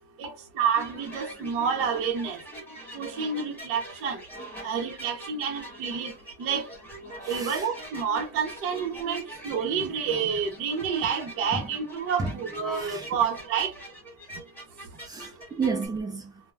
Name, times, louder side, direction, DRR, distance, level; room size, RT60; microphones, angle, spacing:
voice 1, 0.6-2.4 2.9-4.2 4.6-6.1 6.4-6.7 7.3-13.7, right 6 dB, 40° right, 0.7 m, -29 dB
sound 1, 0.7-15.9, right 1 dB, 5° left, 1.1 m, -43 dB
voice 2, 7.2-7.7 11.5-11.7 12.2-12.4 12.7-13.1 15.0-16.3, right 4 dB, 10° right, 0.3 m, -32 dB
2.2 x 2.1 x 3.2 m
supercardioid pair, 140°, 34 cm